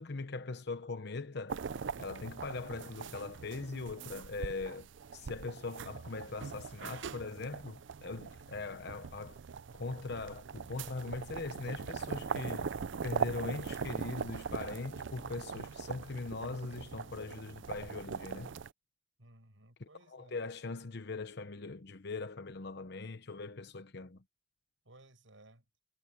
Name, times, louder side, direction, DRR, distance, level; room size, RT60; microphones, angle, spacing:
voice 1, 0.0-1.6 2.0-9.4 9.7-12.7 13.0-18.5 19.8-24.2, left 3 dB, 60° left, 0.9 m, -41 dB
sound 1, 1.5-18.7, right 6 dB, 70° right, 0.5 m, -41 dB
voice 2, 19.2-20.5 24.8-25.6, right 2 dB, 85° right, 5.7 m, -59 dB
head